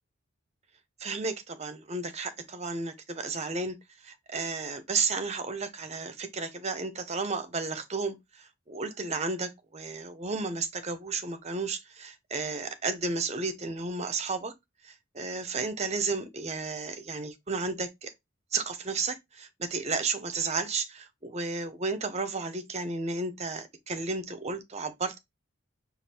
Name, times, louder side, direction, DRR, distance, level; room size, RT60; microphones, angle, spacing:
voice 1, 1.0-3.8 4.0-14.5 14.8-18.1 18.5-25.2, right 4 dB, 30° right, 0.7 m, -33 dB
5.1 x 2.4 x 4.2 m
head